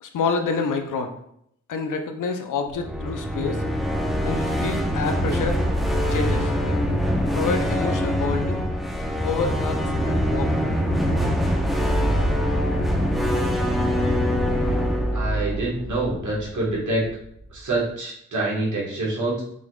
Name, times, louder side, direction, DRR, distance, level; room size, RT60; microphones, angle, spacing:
voice 1, 0.0-1.1 1.7-3.6 4.2-5.6 6.1-6.5 7.3-8.6 9.2-9.8 10.1-10.5, left 4 dB, 75° left, 5 dB, 0.7 m, -27 dB
sound 1, 2.7-16.7, equal, ahead, 0.9 m, -23 dB
voice 2, 15.1-17.1 17.5-19.4, right 2 dB, 65° right, -4 dB, 1.6 m, -26 dB
5.4 x 3.0 x 2.4 m, 0.72 s
supercardioid pair, 45°, 32 cm